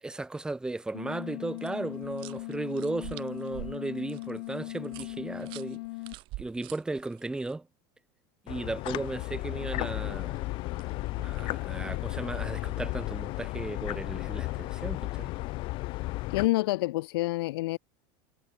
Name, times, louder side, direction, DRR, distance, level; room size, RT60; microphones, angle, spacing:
voice 1, 0.0-5.8 6.4-7.7 8.5-10.5 11.2-15.3, right 2 dB, 5° right, 4.0 m, -35 dB
sound 1, 0.9-6.1, left 23 dB, 65° left, 4.9 m, -39 dB
sound 2, 1.6-7.5 10.1-11.6, right 20 dB, 45° right, 5.8 m, -47 dB
sound 3, 8.5-16.5, left 21 dB, 45° left, 2.0 m, -34 dB
voice 2, 16.3-17.8, left 19 dB, 85° left, 0.5 m, -27 dB
supercardioid pair, 160°, 12 cm